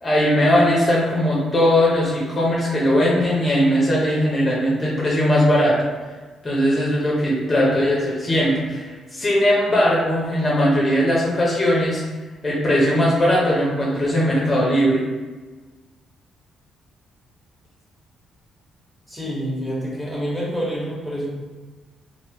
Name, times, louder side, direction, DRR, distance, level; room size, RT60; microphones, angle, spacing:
voice 1, 0.0-5.8 6.4-12.0 12.4-15.0, equal, 30° left, -5 dB, 0.7 m, -19 dB
voice 2, 19.1-21.3, equal, 5° right, -6 dB, 1.2 m, -27 dB
3.4 x 2.5 x 2.9 m, 1.3 s
cardioid pair, 90°, 0 cm